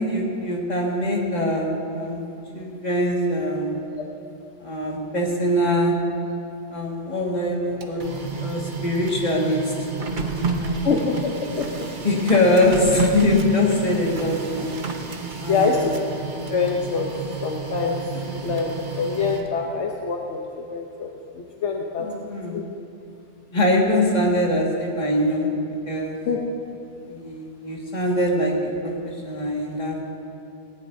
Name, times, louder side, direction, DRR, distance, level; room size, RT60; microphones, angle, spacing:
voice 1, 0.0-2.2 2.5-3.8 4.6-6.0 6.7-9.7 10.0-10.9 12.0-14.7 15.4-16.0 18.1-18.5 22.0-22.6 23.5-25.5 25.9-26.2 27.1-30.1, left 1 dB, 35° left, -3 dB, 2.2 m, -23 dB
Printer, 7.6-19.7, right 4 dB, 45° right, 1.0 m, -31 dB
voice 2, 10.8-11.9 15.5-15.8 16.5-18.0 18.4-20.4 20.7-21.1 21.3-22.1 22.5-22.6 26.3-26.4, left 5 dB, 70° left, 0 dB, 1.2 m, -25 dB
18.0 x 17.0 x 2.7 m, 2.7 s
omnidirectional pair, 1.3 m